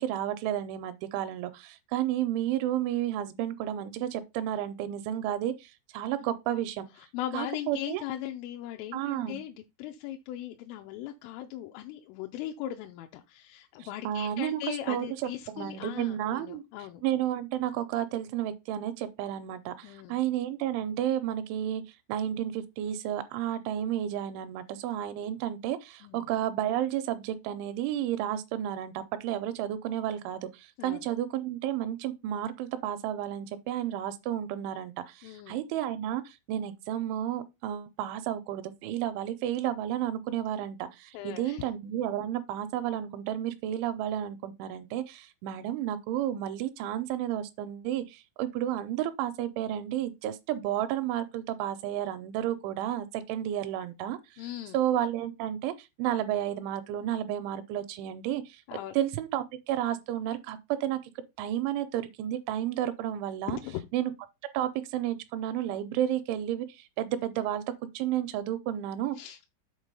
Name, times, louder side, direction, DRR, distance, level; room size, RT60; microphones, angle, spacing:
voice 1, 0.0-6.9 7.3-8.0 8.9-9.4 13.8-15.3 15.6-16.6 17.0-54.4 54.7-58.6 58.9-61.0 61.4-63.6 63.9-64.1 64.5-67.6 67.9-69.2, right 11 dB, 80° right, 2.9 m, -32 dB
voice 2, 7.0-17.0 19.8-20.2 26.0-26.3 30.8-31.1 35.2-35.6 41.1-41.7 54.4-54.8 58.7-59.0 63.5-63.8 69.2-69.5, left 12 dB, 85° left, 3.2 m, -39 dB
8.1 x 3.7 x 5.4 m
omnidirectional pair, 5.7 m